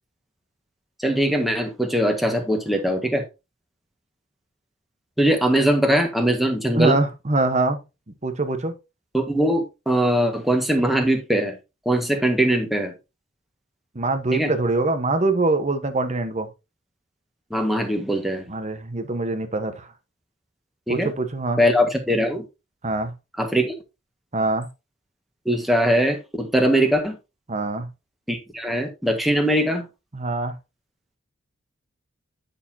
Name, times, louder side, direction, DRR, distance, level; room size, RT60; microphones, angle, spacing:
voice 1, 1.0-3.2 5.2-7.0 9.1-11.6 11.8-12.9 14.3-14.5 17.5-18.4 20.9-21.1 21.6-22.4 23.4-23.8 25.4-27.2 28.3-29.9, right 1 dB, ahead, 1.6 m, -21 dB
voice 2, 6.7-7.8 8.2-8.7 13.9-16.5 18.5-19.9 20.9-21.6 22.8-23.1 24.3-24.7 27.5-27.9 30.1-30.5, right 2 dB, 35° right, 1.2 m, -23 dB
9.7 x 6.7 x 2.8 m
head